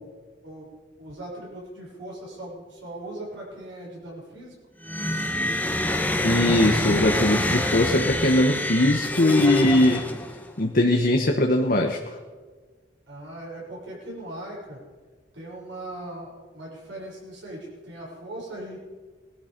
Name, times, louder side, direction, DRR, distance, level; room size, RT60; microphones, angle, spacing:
voice 1, 1.0-4.5 13.1-14.8 15.3-18.8, right 1 dB, 80° right, -4 dB, 6.9 m, -39 dB
sound 1, 4.8-10.5, left 1 dB, 10° left, 1.3 m, -26 dB
voice 2, 6.2-10.0 10.6-12.0, left 1 dB, 50° left, 3 dB, 1.2 m, -20 dB
20.0 x 12.5 x 5.2 m, 1.4 s
head